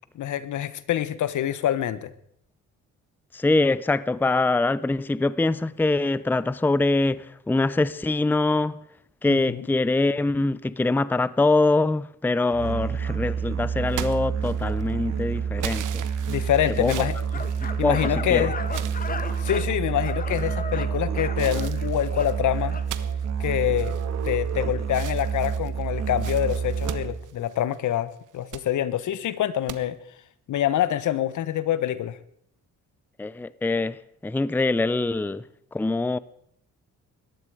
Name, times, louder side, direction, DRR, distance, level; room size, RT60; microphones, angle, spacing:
voice 1, 0.1-2.1 9.3-9.7 16.3-17.1 17.8-18.6 19.4-22.8 23.4-24.0 24.2-29.9 30.5-32.2, left 11 dB, 70° left, 1.2 m, -26 dB
voice 2, 3.3-8.8 9.2-16.0 16.8-16.9 17.8-18.0 18.3-18.5 33.2-34.0 34.2-35.4 35.7-36.2, left 2 dB, 5° left, 0.6 m, -23 dB
Musical instrument, 12.5-27.3, right 6 dB, 55° right, 2.8 m, -28 dB
sound 1, 13.9-14.9 15.6-18.2 18.7-19.7 20.3-20.8 21.4-24.5 24.9-27.9 28.3-28.7 29.7-29.8, right 11 dB, 75° right, 1.2 m, -40 dB
sound 2, 16.9-22.9, left 4 dB, 25° left, 1.4 m, -37 dB
20.0 x 14.5 x 4.9 m
cardioid pair, 85°, 31 cm